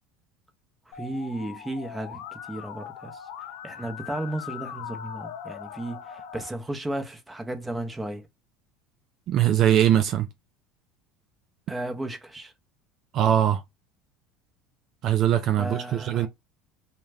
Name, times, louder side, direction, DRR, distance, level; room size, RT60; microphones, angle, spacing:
Musical instrument, 0.9-6.5, left 9 dB, 75° left, 0.4 m, -40 dB
voice 1, 0.9-3.2 3.6-8.3 11.7-12.5 15.6-16.3, right 1 dB, 10° right, 0.7 m, -34 dB
voice 2, 9.3-10.3 13.1-13.6 15.0-16.3, right 11 dB, 55° right, 0.3 m, -21 dB
2.2 x 2.2 x 3.3 m
hypercardioid pair, 85°, 0 cm